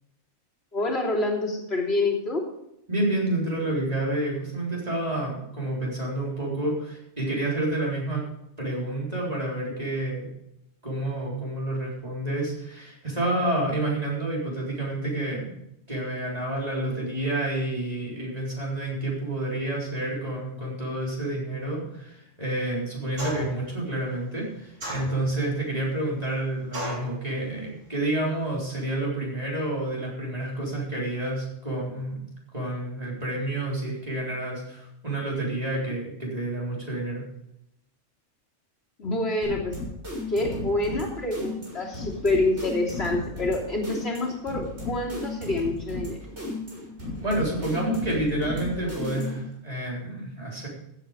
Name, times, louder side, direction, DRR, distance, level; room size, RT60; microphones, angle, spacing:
voice 1, 0.7-2.5 39.0-39.8 40.3-46.2, left 2 dB, 55° left, -3 dB, 3.4 m, -27 dB
voice 2, 2.9-8.2 8.6-10.3 10.8-15.5 15.9-32.2 32.5-37.2 47.1-50.7, right 1 dB, 30° right, -4 dB, 4.2 m, -29 dB
sound 1, 23.2-23.6 24.8-25.5 26.7-27.1, equal, 75° right, 4.5 m, -33 dB
sound 2, 39.4-49.5, left 2 dB, 60° right, 5.4 m, -35 dB
15.0 x 8.7 x 5.1 m, 0.81 s
omnidirectional pair, 1.3 m